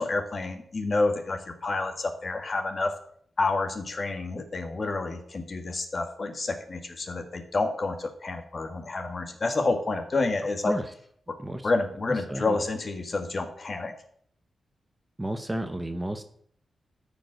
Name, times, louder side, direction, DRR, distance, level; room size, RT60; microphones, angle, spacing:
voice 1, 0.0-3.0 3.4-10.8 11.3-11.4 11.6-13.9, left 3 dB, 35° left, 6 dB, 1.7 m, -29 dB
voice 2, 15.2-16.2, right 1 dB, 10° right, 8 dB, 0.8 m, -31 dB
13.5 x 5.3 x 7.5 m, 0.63 s
wide cardioid pair, 135°, 0 cm